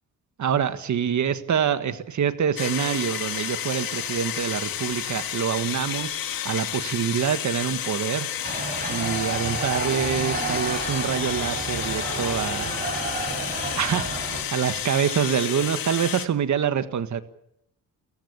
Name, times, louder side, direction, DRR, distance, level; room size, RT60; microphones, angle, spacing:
voice 1, 0.4-6.2 6.4-8.3 8.9-12.7 13.8-17.2, right 8 dB, 55° right, 11 dB, 1.7 m, -26 dB
sound 1, 2.6-16.3, left 10 dB, 80° left, 1.9 m, -31 dB
sound 2, 8.4-14.4, right 2 dB, 25° right, 6.7 m, -31 dB
Wind instrument woodwind instrument, 9.0-13.3 14.0-14.1, equal, 25° left, 7.7 m, -38 dB
29.0 x 15.0 x 8.6 m, 0.80 s
cardioid pair, 130°, 35 cm